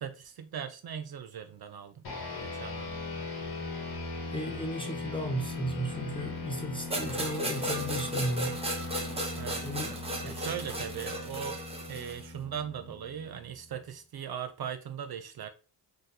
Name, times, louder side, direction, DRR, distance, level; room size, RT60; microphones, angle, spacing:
voice 1, 0.0-2.0 2.4-3.0 9.4-9.6 10.2-11.6 11.9-15.5, right 8 dB, 50° right, 0.5 m, -39 dB
sound 1, 2.0-13.7, left 3 dB, 50° left, 1.1 m, -40 dB
voice 2, 4.3-8.6 9.6-9.9 10.2-10.4, right 1 dB, 10° left, 0.5 m, -34 dB
sound 2, 6.9-12.3, right 1 dB, 10° right, 0.9 m, -35 dB
3.7 x 2.4 x 2.7 m
cardioid pair, 85°, 49 cm